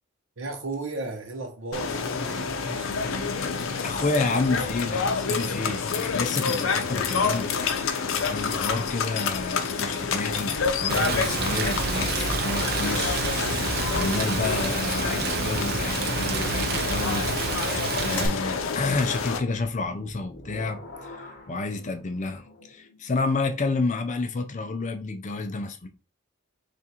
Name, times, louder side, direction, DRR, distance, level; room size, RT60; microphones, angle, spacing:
voice 1, 0.4-3.1, right 3 dB, 70° right, 1.0 m, -35 dB
sound 1, 1.7-19.4, left 5 dB, 85° left, 0.6 m, -28 dB
voice 2, 3.8-13.5 13.9-17.4 17.7-25.9, left 3 dB, 35° left, 0.5 m, -30 dB
Rain, 10.9-18.3, right 5 dB, 50° right, 0.5 m, -29 dB
sound 2, 19.6-23.2, left 2 dB, 55° left, 0.9 m, -47 dB
3.5 x 2.5 x 4.3 m
head